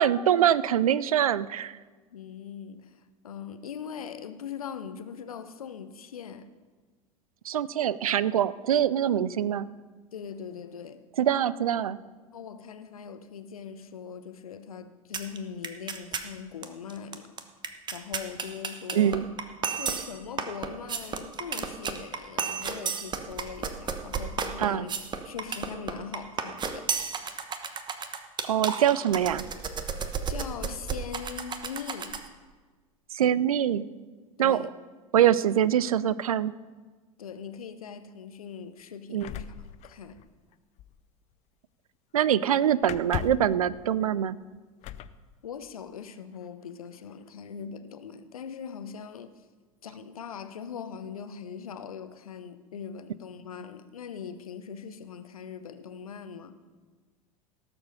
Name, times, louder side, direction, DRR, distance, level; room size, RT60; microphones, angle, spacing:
voice 1, 0.0-1.8 7.5-9.7 11.2-12.0 18.9-19.2 24.6-24.9 28.5-29.4 33.1-33.8 34.4-34.6 35.1-36.5 39.1-39.3 42.1-44.4, right 10 dB, 75° right, 0.5 m, -24 dB
voice 2, 2.1-6.5 10.1-11.0 12.3-17.3 17.9-19.2 19.7-24.9 25.2-27.0 30.3-32.2 34.4-34.7 37.2-39.5 39.8-40.2 45.4-49.3 49.8-56.6, left 7 dB, 75° left, 0.8 m, -41 dB
sound 1, 15.1-15.4 15.6-16.3 16.6-16.7 16.9-32.3, right 6 dB, 25° right, 1.0 m, -33 dB
sound 2, 39.2-40.5 40.8-41.0 42.8-43.6 44.8-45.2 46.3-46.4 46.8-47.3, left 12 dB, 40° left, 0.5 m, -37 dB
17.5 x 7.1 x 5.5 m
figure-of-eight pair, 80°, 19 cm